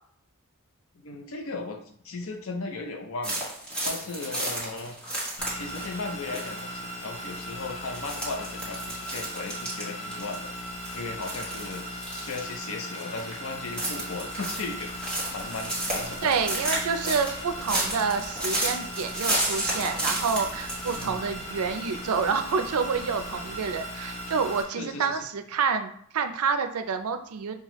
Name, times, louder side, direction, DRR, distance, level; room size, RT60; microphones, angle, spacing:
voice 1, 1.0-1.8 2.0-3.5 3.8-5.0 5.5-10.5 10.9-14.9 15.3-16.4 20.9-21.2 24.8-25.2, left 3 dB, 70° left, 4 dB, 0.6 m, -36 dB
sound 1, 3.2-6.0 6.3-6.6 7.1-7.4 7.9-10.6 10.8-12.5 13.0-13.3 13.6-21.1, right 1 dB, 5° left, 1.1 m, -32 dB
sound 2, 5.4-24.6, equal, 30° left, 0.6 m, -38 dB
sound 3, 14.0-23.8, right 2 dB, 45° right, 0.6 m, -50 dB
voice 2, 16.2-27.5, right 5 dB, 90° right, 8 dB, 0.4 m, -28 dB
5.6 x 2.3 x 3.0 m, 0.64 s
head